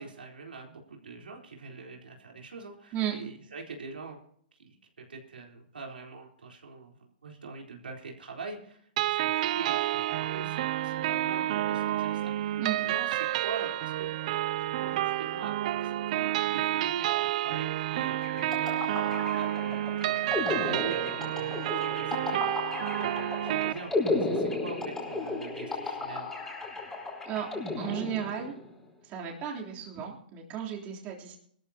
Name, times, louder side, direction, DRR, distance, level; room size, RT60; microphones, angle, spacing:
voice 1, 0.0-4.2 4.6-26.3, right 4 dB, 90° right, 1 dB, 3.9 m, -44 dB
sound 1, 9.0-23.7, right 13 dB, 50° right, 0.5 m, -30 dB
sound 2, 18.2-28.7, left 3 dB, 10° left, 5.0 m, -34 dB
voice 2, 27.8-28.6 29.0-31.4, right 9 dB, 30° right, -2 dB, 3.4 m, -34 dB
21.0 x 14.0 x 2.9 m, 0.63 s
hypercardioid pair, 140°, 5 cm